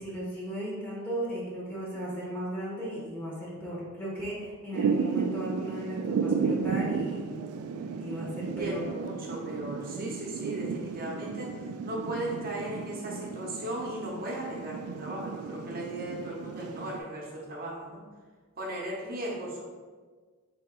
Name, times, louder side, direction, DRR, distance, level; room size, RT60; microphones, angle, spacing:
voice 1, 0.0-7.3 8.0-8.8, right 1 dB, 10° left, -6 dB, 0.9 m, -36 dB
Thunder / Rain, 4.7-17.0, right 5 dB, 80° right, 0.3 m, -33 dB
voice 2, 8.5-18.1 18.6-19.6, right 1 dB, 45° right, -2 dB, 0.8 m, -37 dB
3.4 x 2.9 x 4.4 m, 1.5 s
head